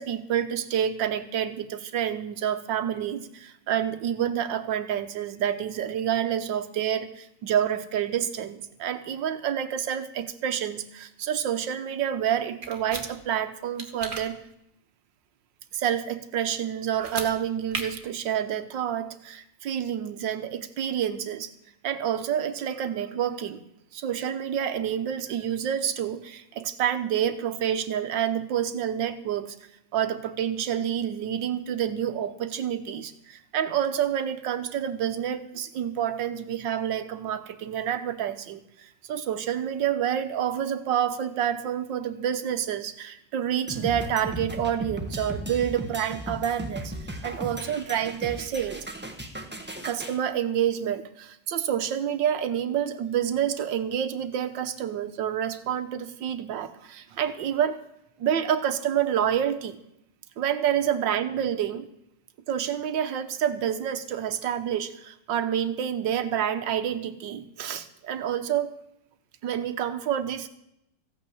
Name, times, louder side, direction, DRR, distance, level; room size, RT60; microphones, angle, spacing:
voice 1, 0.0-14.4 15.7-21.5 21.8-23.6 23.9-29.6 29.9-46.9 47.2-48.9 49.8-57.8 58.2-59.8 60.4-61.9 62.5-68.7 69.4-70.5, right 9 dB, 85° right, 10 dB, 1.7 m, -28 dB
sound 1, 12.6-13.0 13.8-14.2 16.9-17.3 17.7-17.8, right 3 dB, 30° right, 1.7 m, -34 dB
sound 2, 43.7-50.2, right 1 dB, 5° right, 1.3 m, -36 dB
15.0 x 9.2 x 7.0 m, 0.79 s
omnidirectional pair, 1.9 m